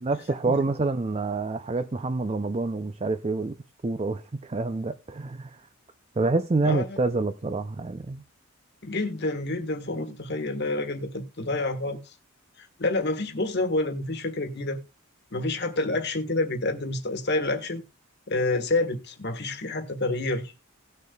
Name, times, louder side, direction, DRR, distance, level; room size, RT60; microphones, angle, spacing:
voice 1, 0.0-3.6 3.8-5.6 6.2-8.2, right 3 dB, 30° right, 0.5 m, -27 dB
voice 2, 6.6-7.0 8.8-12.0 12.6-14.8 15.3-17.8 18.3-20.5, left 2 dB, 50° left, 1.5 m, -28 dB
18.0 x 6.7 x 2.3 m
head